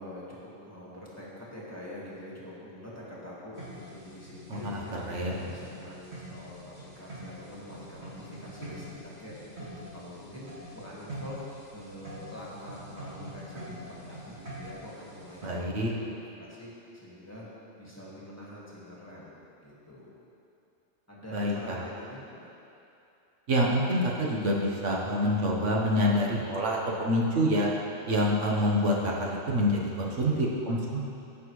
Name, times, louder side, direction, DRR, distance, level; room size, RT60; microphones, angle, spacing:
voice 1, 0.0-17.5 17.8-19.3 19.6-20.1 21.1-22.5, left 1 dB, 10° left, -7 dB, 1.7 m, -45 dB
sound 1, 3.5-15.5, equal, 60° right, 2.7 m, -45 dB
voice 2, 4.7-5.4 15.4-15.9 21.3-21.8 23.5-27.7 28.1-31.1, equal, 75° right, -3 dB, 1.4 m, -27 dB
15.0 x 6.0 x 3.1 m, 2.7 s
omnidirectional pair, 1.3 m